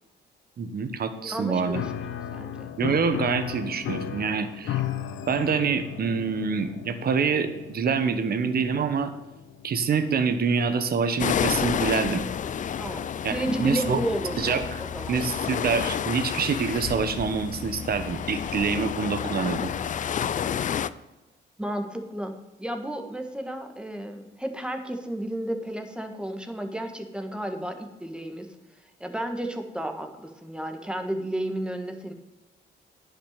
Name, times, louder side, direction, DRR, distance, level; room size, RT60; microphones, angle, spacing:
voice 1, 0.6-1.8 2.8-4.8 5.3-9.1 9.6-12.2 13.2-14.0 14.4-14.8 15.1-19.7, right 5 dB, 50° right, 9 dB, 1.2 m, -26 dB
voice 2, 1.2-1.9 2.3-2.7 12.8-15.2 21.6-28.5 29.0-32.1, right 1 dB, 5° right, 5 dB, 1.5 m, -32 dB
Piano, 1.7-10.2, left 10 dB, 75° left, 0.8 m, -35 dB
sound 1, 11.2-20.9, left 8 dB, 40° left, 0.4 m, -30 dB
10.0 x 5.9 x 6.7 m, 1.1 s
cardioid pair, 90°, 20 cm